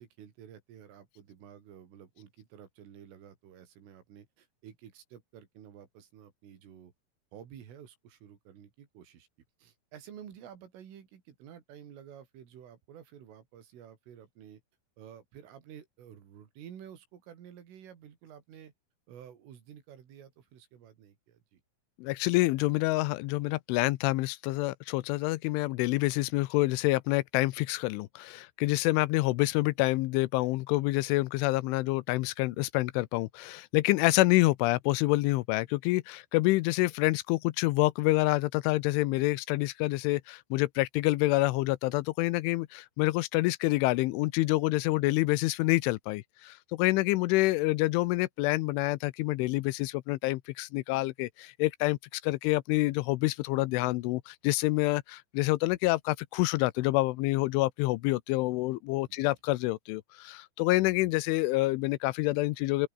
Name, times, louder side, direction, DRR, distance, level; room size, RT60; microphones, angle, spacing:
voice 1, 0.0-6.9 7.3-9.3 9.6-14.6 15.0-18.7 19.1-21.6 59.1-59.4, right 9 dB, 85° right, 5.9 m, -51 dB
voice 2, 22.0-62.9, left 20 dB, 90° left, 3.1 m, -27 dB
open air
omnidirectional pair, 5.6 m